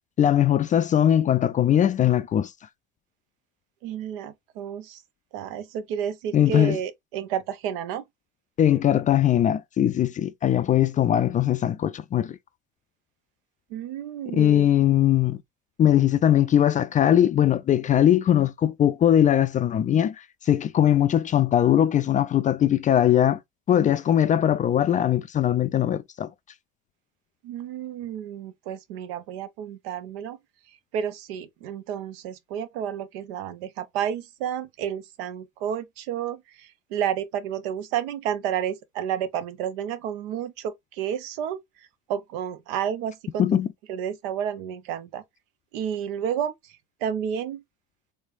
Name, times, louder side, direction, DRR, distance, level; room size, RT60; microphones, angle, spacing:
voice 1, 0.2-2.5 6.3-6.8 8.6-12.4 14.3-15.4 15.8-20.2 20.5-23.4 23.7-26.3 43.4-43.7, left 10 dB, 25° left, 0.3 m, -20 dB
voice 2, 3.8-5.0 5.3-8.0 13.7-14.7 27.4-30.4 30.9-41.6 42.1-43.6 43.9-45.2 45.7-46.7 47.0-47.6, right 9 dB, 70° right, 0.7 m, -31 dB
3.4 x 3.2 x 2.5 m
hypercardioid pair, 85°, 30 cm